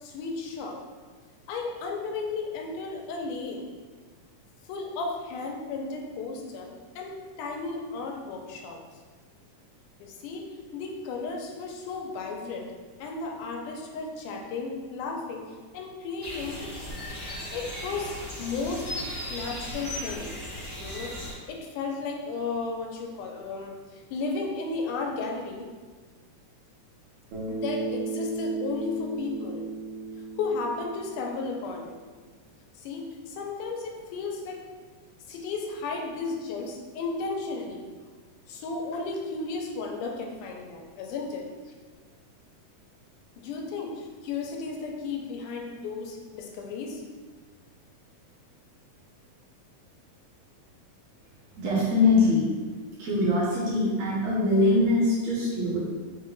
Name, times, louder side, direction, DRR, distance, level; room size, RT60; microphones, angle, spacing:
voice 1, 0.0-0.8 1.5-3.7 4.7-8.8 10.0-10.5 10.7-12.7 13.0-16.7 17.5-18.9 19.3-20.3 20.8-25.7 27.5-29.7 30.4-32.0 32.8-34.6 35.3-37.9 38.5-41.5 43.4-47.0, left 4 dB, 85° left, 1 dB, 2.1 m, -34 dB
sound 1, 16.2-21.3, equal, 50° left, 0.7 m, -37 dB
Bass guitar, 27.3-31.7, right 4 dB, 90° right, 2.5 m, -35 dB
voice 2, 51.6-52.5 53.0-55.8, left 2 dB, 65° right, -7 dB, 1.9 m, -23 dB
5.7 x 2.1 x 3.8 m, 1.4 s
omnidirectional pair, 3.6 m